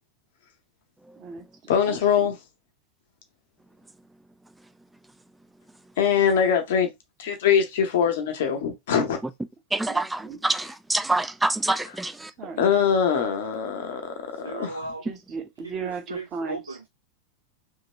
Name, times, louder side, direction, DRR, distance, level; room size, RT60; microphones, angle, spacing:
voice 1, 1.2-2.3 9.9-10.4 12.4-12.7 15.0-16.8, right 5 dB, 30° right, 0.7 m, -37 dB
voice 2, 1.7-2.3 6.0-6.9 7.2-9.2 11.7-11.8 12.6-14.8, left 7 dB, 55° left, 0.9 m, -23 dB
voice 3, 9.7-12.3, right 2 dB, 5° right, 0.3 m, -26 dB
voice 4, 14.4-15.0 15.8-16.9, right 3 dB, 80° right, 0.4 m, -36 dB
3.0 x 2.5 x 2.9 m
figure-of-eight pair, 90°, 0 cm